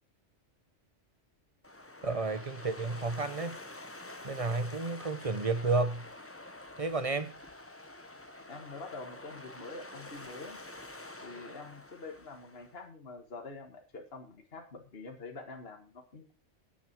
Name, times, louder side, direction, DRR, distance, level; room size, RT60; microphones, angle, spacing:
sound 1, 1.6-12.8, left 2 dB, 10° left, 0.9 m, -48 dB
voice 1, 2.0-3.6 4.2-6.0 6.8-7.3, right 3 dB, 30° right, 1.1 m, -31 dB
voice 2, 8.5-10.6 11.2-16.3, left 3 dB, 55° left, 1.8 m, -46 dB
9.3 x 8.4 x 6.0 m
omnidirectional pair, 1.2 m